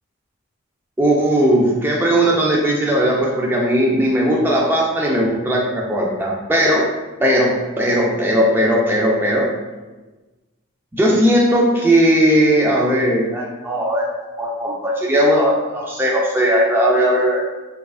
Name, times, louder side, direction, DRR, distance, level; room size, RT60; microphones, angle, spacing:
voice 1, 1.0-6.8 7.2-9.5 10.9-14.1 14.4-17.4, equal, 10° right, -3 dB, 0.3 m, -17 dB
4.8 x 2.4 x 2.3 m, 1.2 s
head